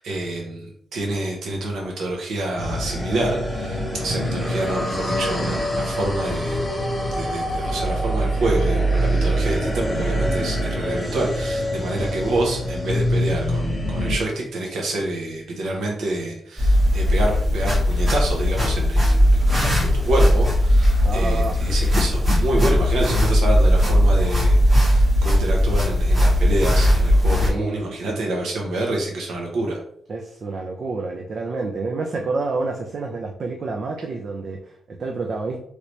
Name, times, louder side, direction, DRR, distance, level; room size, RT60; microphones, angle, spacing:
voice 1, 0.0-6.6 7.2-19.4 19.8-29.8, right 2 dB, 85° right, -1 dB, 0.8 m, -27 dB
sound 1, 2.6-14.2, equal, 10° left, 1.0 m, -24 dB
voice 2, 11.8-12.1 21.0-21.9 27.3-28.2 30.1-35.6, right 3 dB, 50° right, 2 dB, 0.4 m, -29 dB
sound 2, 16.6-27.5, equal, 35° right, 1.3 m, -18 dB
3.1 x 2.7 x 3.0 m, 0.67 s
cardioid pair, 120°, 0 cm